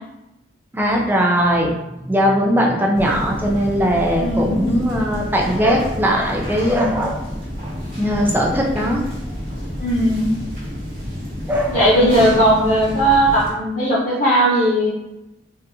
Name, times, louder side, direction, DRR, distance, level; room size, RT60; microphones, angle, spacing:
voice 1, 0.7-1.7 2.1-7.2 8.0-9.0 11.5-11.9, equal, 10° right, -1 dB, 0.5 m, -19 dB
sound 1, 2.9-13.5, equal, 35° right, 1.4 m, -29 dB
voice 2, 4.2-4.6 9.8-10.3 11.7-14.9, right 1 dB, 40° left, -10 dB, 0.8 m, -17 dB
3.8 x 2.7 x 2.7 m, 0.92 s
head